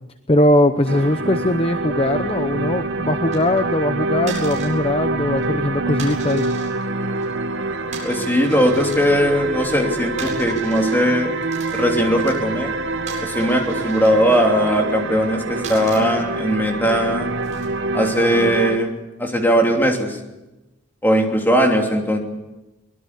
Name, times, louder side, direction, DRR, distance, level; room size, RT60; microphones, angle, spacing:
voice 1, 0.3-6.5, left 1 dB, 25° left, 9 dB, 0.8 m, -20 dB
sound 1, 0.9-18.8, right 2 dB, 55° right, 1.2 m, -26 dB
sound 2, 3.2-3.6 4.3-4.7 5.2-5.5 6.0-6.7 7.0-7.3 7.9-9.2 10.2-11.0 11.2-12.4 13.1-14.4 15.6-16.0 16.8-17.7 18.9-19.2, right 4 dB, 35° right, 6.6 m, -37 dB
voice 2, 8.0-11.3 11.7-12.7 13.2-17.3 17.9-18.9 19.2-20.2 21.0-22.2, equal, 10° left, 2 dB, 3.0 m, -19 dB
24.0 x 21.0 x 8.3 m, 1.0 s
head